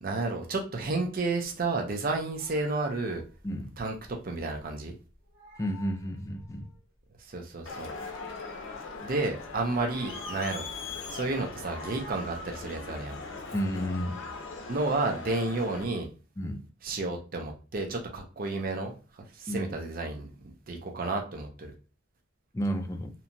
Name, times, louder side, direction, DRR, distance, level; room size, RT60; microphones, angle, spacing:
voice 1, 0.0-3.2 3.8-4.9 7.3-7.9 9.0-10.6 11.1-13.2 14.7-16.1 16.8-18.9 19.4-20.3 20.7-21.7, right 3 dB, 45° right, 0.5 m, -31 dB
Meow, 2.2-4.8 5.1-6.8 7.6-9.3 9.6-11.0 11.3-12.7, right 1 dB, 70° right, 1.2 m, -48 dB
voice 2, 5.6-6.7 13.5-14.2 16.4-16.6 19.5-19.8 22.5-23.1, equal, 15° left, 0.3 m, -31 dB
Crowd, 7.7-15.8, left 4 dB, 75° left, 0.5 m, -40 dB
2.8 x 2.3 x 2.6 m
head